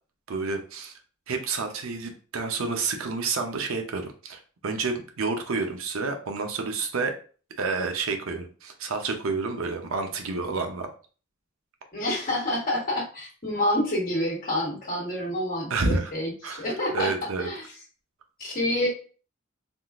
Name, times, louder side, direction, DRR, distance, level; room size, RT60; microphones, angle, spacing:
voice 1, 0.3-0.9 1.3-7.1 7.6-10.9 15.7-16.1 16.4-17.5, right 4 dB, 80° right, 5 dB, 0.6 m, -29 dB
voice 2, 11.9-17.1 17.4-17.7 18.4-18.9, left 1 dB, 45° left, -3 dB, 1.5 m, -28 dB
3.6 x 2.4 x 2.4 m, 0.38 s
head